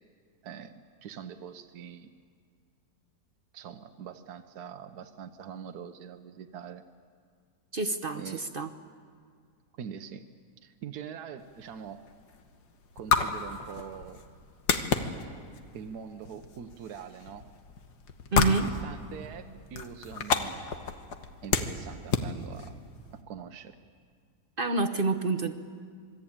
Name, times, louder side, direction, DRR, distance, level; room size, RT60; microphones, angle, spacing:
voice 1, 0.4-2.1 3.5-6.8 8.1-8.5 9.7-10.2 10.6-12.0 12.9-14.2 15.7-17.5 18.4-20.7 21.4-22.7 23.1-23.8, right 8 dB, 70° right, 7 dB, 1.4 m, -43 dB
voice 2, 7.7-8.7 18.3-18.7 24.6-25.5, right 3 dB, 40° right, 6 dB, 1.0 m, -28 dB
sound 1, 11.4-23.2, left 5 dB, 75° left, 1.9 m, -32 dB
27.0 x 21.0 x 8.8 m, 2.1 s
omnidirectional pair, 1.8 m